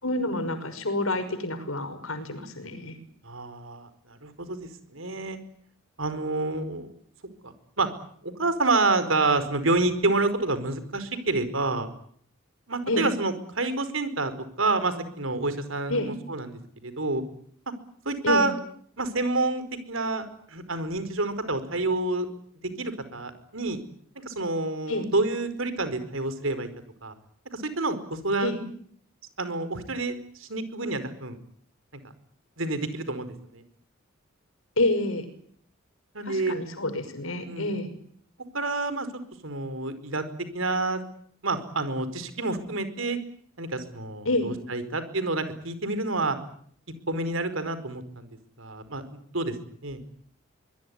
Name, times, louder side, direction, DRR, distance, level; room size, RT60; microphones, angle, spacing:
voice 1, 0.0-3.0 12.9-13.1 15.9-16.1 18.2-18.5 24.9-25.1 28.4-28.6 34.8-35.3 36.3-37.9 44.3-44.5, left 2 dB, 80° left, 10 dB, 5.7 m, -28 dB
voice 2, 3.2-5.4 6.0-6.9 7.4-7.9 8.2-11.9 12.7-14.3 14.6-17.2 18.0-18.5 19.0-22.3 22.8-23.8 24.2-26.7 27.0-27.1 27.5-28.5 29.4-31.4 32.6-33.6 36.1-36.6 37.4-37.8 38.5-40.2 40.5-41.0 41.4-43.2 43.6-46.4 47.1-48.3 48.6-49.5 49.8-50.0, right 2 dB, 70° right, 12 dB, 4.7 m, -28 dB
24.5 x 21.5 x 9.6 m, 0.63 s
head